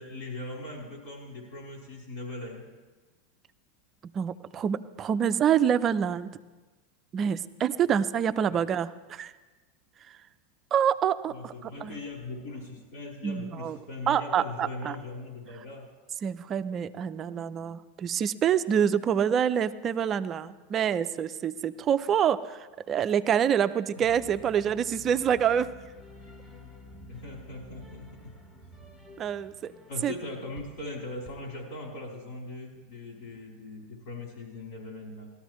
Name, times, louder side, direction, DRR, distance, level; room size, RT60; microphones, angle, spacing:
voice 1, 0.0-2.7 8.5-8.6 11.3-15.9 21.8-21.9 24.0-24.1 27.1-28.3 29.9-35.3, left 2 dB, 65° left, -1 dB, 4.4 m, -40 dB
voice 2, 4.1-6.3 7.1-9.3 10.1-10.2 10.7-12.0 13.2-13.8 14.1-15.0 16.2-25.7 29.2-29.7 30.0-30.1, right 8 dB, 35° right, 12 dB, 0.5 m, -26 dB
sound 1, 24.0-31.5, left 2 dB, 25° left, 2.0 m, -50 dB
18.0 x 13.5 x 3.1 m, 1.3 s
hypercardioid pair, 100°, 0 cm